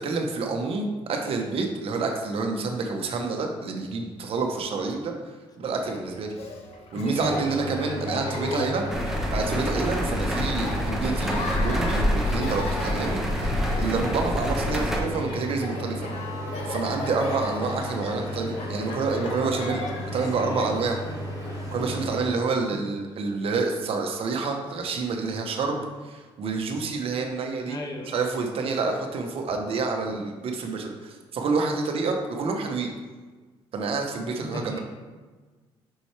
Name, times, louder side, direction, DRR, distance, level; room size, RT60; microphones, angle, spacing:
voice 1, 0.0-5.1 5.6-6.3 6.9-8.8 9.3-13.2 13.5-16.1 16.7-19.8 20.1-21.0 21.7-27.8 28.1-32.9 33.7-34.8, right 4 dB, 60° right, 3 dB, 0.9 m, -28 dB
Laughter, 5.6-22.4, left 2 dB, 70° left, 1.0 m, -38 dB
voice 2, 7.0-7.6 8.2-8.7 18.7-19.1 20.1-20.7 22.7-22.8 27.7-28.1 34.5-34.8, left 2 dB, 35° left, 3 dB, 0.9 m, -35 dB
sound 1, 7.2-22.2, equal, 30° right, 1.8 m, -35 dB
sound 2, 8.9-15.0, equal, 5° right, 1.0 m, -27 dB
6.2 x 5.6 x 3.3 m, 1.3 s
cardioid pair, 110°, 11 cm